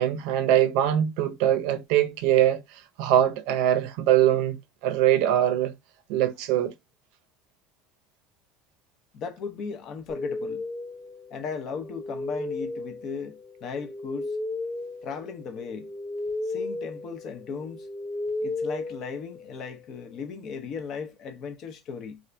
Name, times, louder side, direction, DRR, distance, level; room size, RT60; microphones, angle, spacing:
voice 1, 0.0-5.7 6.1-6.7, right 11 dB, 75° right, 0.6 m, -23 dB
voice 2, 9.1-10.6 11.3-14.4 15.0-15.9 16.4-17.9 18.4-22.2, left 5 dB, 45° left, 0.7 m, -36 dB
sound 1, 10.1-19.8, left 2 dB, 10° left, 0.8 m, -35 dB
2.7 x 2.5 x 3.3 m
cardioid pair, 145°, 0 cm